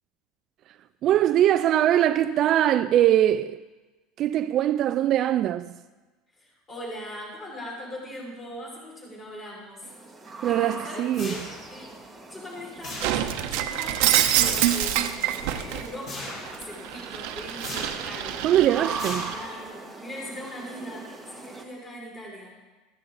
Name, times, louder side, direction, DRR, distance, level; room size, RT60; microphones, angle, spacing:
voice 1, 1.0-3.6 4.2-5.7 10.4-11.3 18.4-19.2, right 12 dB, 40° right, 0.3 m, -22 dB
voice 2, 6.3-9.9 10.4-11.9 12.3-22.5, equal, 25° left, 5.5 m, -40 dB
sound 1, 9.8-21.6, right 3 dB, 5° right, 1.3 m, -41 dB
sound 2, 11.1-11.8 12.8-13.5 14.4-14.9 16.1-16.6 17.6-18.1 19.0-19.7, left 2 dB, 40° left, 4.7 m, -38 dB
Shatter, 13.0-15.9 16.3-19.4, right 12 dB, 70° right, 0.9 m, -26 dB
14.0 x 13.5 x 4.0 m
cardioid pair, 150°, 0 cm